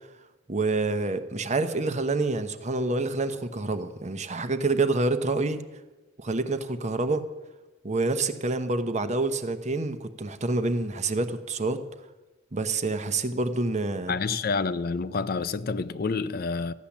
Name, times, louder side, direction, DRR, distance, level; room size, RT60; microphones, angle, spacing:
voice 1, 0.5-5.6 6.2-7.2 7.8-11.8 12.5-14.1, right 3 dB, 35° right, 0.9 m, -27 dB
voice 2, 14.1-16.7, left 4 dB, 50° left, 0.5 m, -28 dB
14.5 x 10.0 x 7.2 m
head